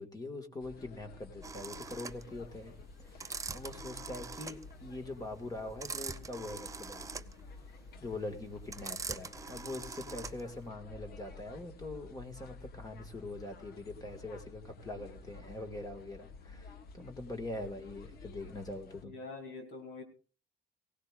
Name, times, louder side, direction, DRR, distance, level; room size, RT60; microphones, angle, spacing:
voice 1, 0.0-2.7 3.0-7.1 8.0-19.1, left 2 dB, 20° left, 6 dB, 1.8 m, -43 dB
sound 1, 0.6-19.0, left 4 dB, 65° left, 1.2 m, -52 dB
sound 2, 1.4-10.6, right 4 dB, 20° right, 0.5 m, -43 dB
voice 2, 19.0-20.0, left 3 dB, 85° left, 4 dB, 3.1 m, -45 dB
19.0 x 17.0 x 2.5 m, 0.38 s
cardioid pair, 110°, 17 cm